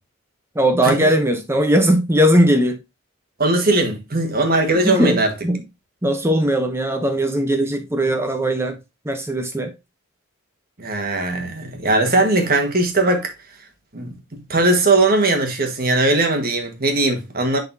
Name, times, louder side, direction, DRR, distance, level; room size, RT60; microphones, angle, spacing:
voice 1, 0.6-2.8 4.8-5.6 6.0-8.8 9.0-9.7, right 1 dB, 10° right, 0.7 m, -18 dB
voice 2, 3.4-5.3 10.8-13.3 13.9-17.6, right 2 dB, 45° right, 1.5 m, -19 dB
11.0 x 4.0 x 2.7 m
head